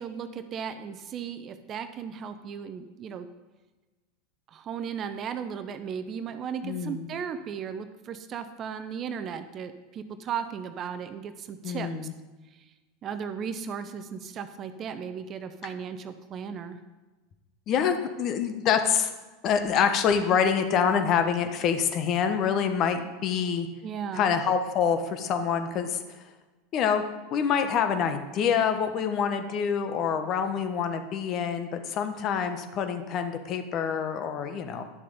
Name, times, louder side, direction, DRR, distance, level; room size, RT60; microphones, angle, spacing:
voice 1, 0.0-3.3 4.5-11.9 13.0-16.8 23.8-24.3, right 7 dB, 40° right, 10 dB, 0.7 m, -36 dB
voice 2, 6.6-7.1 11.6-12.1 17.7-19.1 19.4-23.7 24.1-26.2 26.7-27.0 27.3-34.8, left 7 dB, 45° left, 7 dB, 1.1 m, -26 dB
11.0 x 6.7 x 5.1 m, 1.2 s
hypercardioid pair, 85°, 0 cm